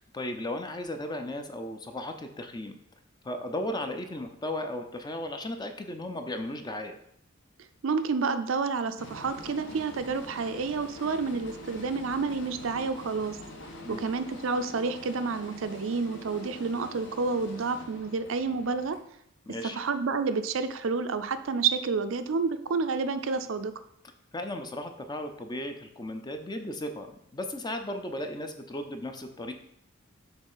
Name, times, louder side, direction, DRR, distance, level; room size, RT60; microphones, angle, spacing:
voice 1, 0.1-2.8 3.2-6.9 13.8-14.1 19.5-19.8 24.3-27.1 27.3-29.5, left 1 dB, 20° left, 6 dB, 0.5 m, -35 dB
voice 2, 7.8-13.4 13.9-19.0 19.7-23.7, right 4 dB, 65° right, 10 dB, 0.5 m, -29 dB
sound 1, 9.0-19.0, left 1 dB, 60° left, 1.0 m, -45 dB
7.2 x 3.2 x 5.5 m, 0.72 s
head